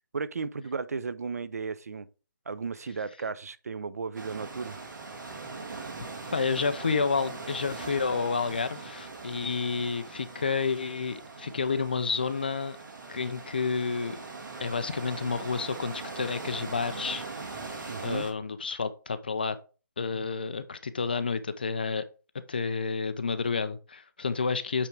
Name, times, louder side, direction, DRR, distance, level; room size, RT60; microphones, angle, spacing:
voice 1, 0.1-2.1 2.5-4.8 17.9-18.3, right 5 dB, 50° right, 0.5 m, -34 dB
sound 1, 4.1-18.3, right 3 dB, 80° right, 2.5 m, -41 dB
voice 2, 6.3-12.8 13.1-14.2 14.6-17.2 18.0-19.6 20.0-22.0 22.5-24.9, left 5 dB, 30° left, 0.4 m, -30 dB
8.5 x 3.6 x 4.5 m
hypercardioid pair, 175°, 11 cm